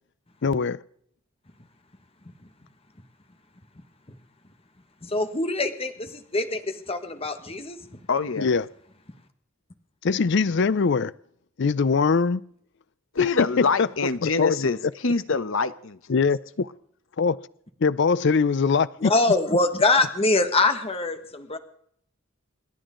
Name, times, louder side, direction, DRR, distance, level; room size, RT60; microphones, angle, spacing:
voice 1, 0.4-0.8 8.4-8.6 10.0-11.1 11.6-12.4 14.2-14.7 16.1-16.7 17.2-17.4 17.8-19.1, left 5 dB, 60° left, 0.5 m, -22 dB
voice 2, 5.0-8.0 19.0-21.6, left 2 dB, 30° left, 1.5 m, -24 dB
voice 3, 8.1-8.5 13.1-16.1 16.6-16.7, left 4 dB, 75° left, 1.0 m, -25 dB
28.5 x 11.0 x 3.8 m
head